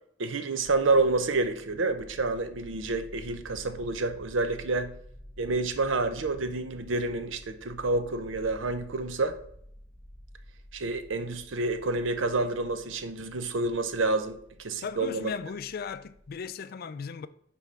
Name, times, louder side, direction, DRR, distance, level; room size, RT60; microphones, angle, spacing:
voice 1, 0.2-4.9 5.4-9.4 10.7-15.3, right 3 dB, 85° right, 0.7 m, -28 dB
sound 1, 0.6-16.5, equal, 5° right, 0.7 m, -50 dB
voice 2, 14.8-17.3, left 6 dB, 50° left, 0.4 m, -37 dB
5.4 x 4.3 x 6.1 m
head